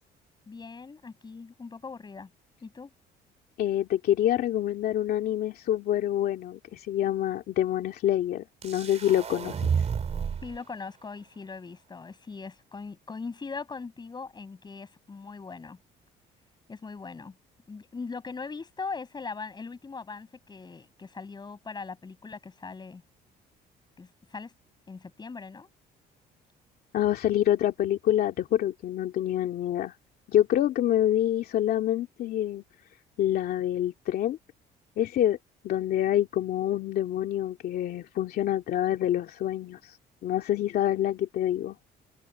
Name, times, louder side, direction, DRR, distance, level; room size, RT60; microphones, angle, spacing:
voice 1, 0.5-2.3 2.6-2.9 10.4-15.8 16.7-17.4 17.7-23.0 24.0-24.5 24.9-25.7, left 4 dB, 25° left, 6.4 m, -40 dB
voice 2, 3.6-9.5 26.9-29.9 30.3-32.6 33.2-34.4 35.0-35.4 35.6-40.0 40.2-41.8, left 12 dB, 65° left, 2.5 m, -26 dB
sound 1, 8.6-10.6, right 7 dB, 40° right, 3.9 m, -30 dB
cardioid pair, 110°, 17 cm